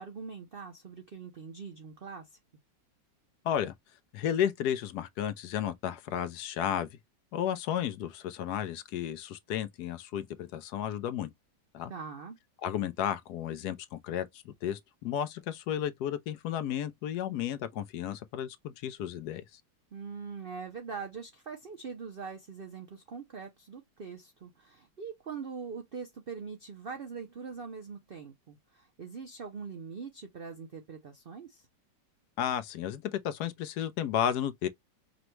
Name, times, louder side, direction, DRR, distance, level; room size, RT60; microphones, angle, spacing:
voice 1, 0.0-2.3 11.9-12.4 19.9-31.7, right 5 dB, 90° right, 0.4 m, -42 dB
voice 2, 4.1-7.0 7.3-11.3 11.7-11.9 12.6-19.6 32.4-34.7, left 10 dB, 70° left, 1.0 m, -33 dB
5.1 x 2.2 x 3.0 m
omnidirectional pair, 2.0 m